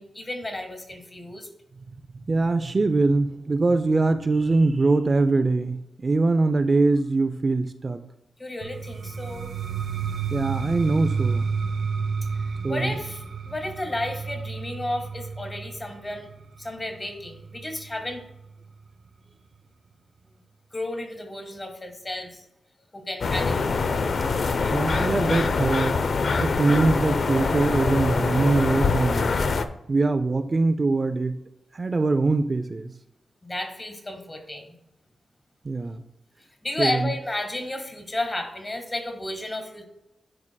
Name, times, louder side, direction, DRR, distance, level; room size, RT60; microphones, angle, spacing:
voice 1, 0.0-1.5 8.4-9.5 12.7-16.3 16.6-18.2 20.7-22.4 22.9-23.7 24.6-24.8 33.4-34.8 36.6-39.8, left 1 dB, 25° left, 4 dB, 1.7 m, -32 dB
voice 2, 2.3-8.0 10.3-11.5 12.6-12.9 24.7-26.0 26.4-29.3 29.9-31.4 31.7-32.9 35.6-36.0 36.8-37.1, right 3 dB, 35° right, 8 dB, 0.4 m, -23 dB
sound 1, 8.6-18.4, right 5 dB, 75° right, 0.7 m, -31 dB
sound 2, 23.2-29.7, left 4 dB, 60° left, 0.5 m, -24 dB
11.0 x 4.7 x 2.3 m, 0.87 s
cardioid pair, 85°, 0 cm